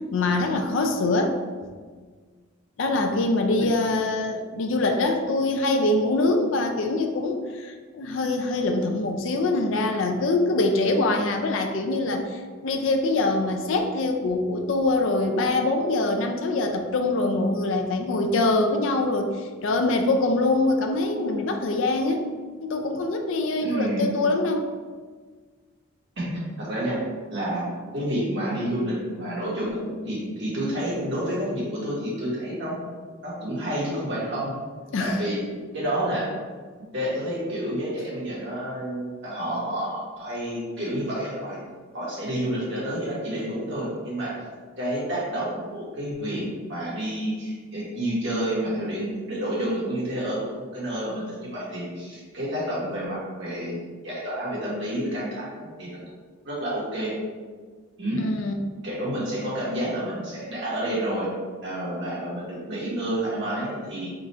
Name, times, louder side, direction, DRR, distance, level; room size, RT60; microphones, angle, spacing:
voice 1, 0.1-1.4 2.8-22.3 22.6-24.7 34.9-35.2 58.2-58.6, left 2 dB, 65° left, 4 dB, 0.4 m, -24 dB
voice 2, 23.6-24.1 26.2-26.3 26.6-27.0 27.3-32.7 33.2-34.5 35.0-35.4 35.7-36.3 36.8-41.6 41.9-44.4 44.8-50.4 50.7-53.8 54.0-56.0 56.4-57.2 58.0-58.2 58.8-61.3 61.6-64.1, right 1 dB, 55° right, -7 dB, 1.5 m, -29 dB
3.8 x 2.4 x 4.2 m, 1.5 s
head